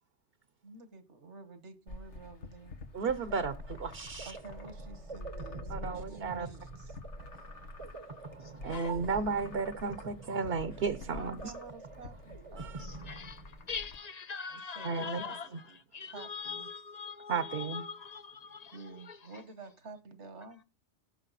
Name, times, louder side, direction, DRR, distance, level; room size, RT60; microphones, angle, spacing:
voice 1, 0.6-2.7 4.2-6.9 11.1-12.9 14.5-15.4 16.0-16.7 18.7-20.6, right 4 dB, 80° right, 1.7 m, -49 dB
sound 1, 1.9-13.9, left 2 dB, 85° left, 1.7 m, -47 dB
voice 2, 2.9-4.4 5.7-6.5 8.6-11.5 14.8-15.2 15.5-15.6 17.3-17.9, right 5 dB, 60° right, 1.0 m, -33 dB
sound 2, 3.0-13.9, right 4 dB, 30° right, 0.8 m, -48 dB
voice 3, 13.1-13.4 13.7-15.5 15.9-18.8 19.1-19.2, left 6 dB, 40° left, 0.8 m, -41 dB
17.5 x 6.6 x 4.1 m
omnidirectional pair, 1.2 m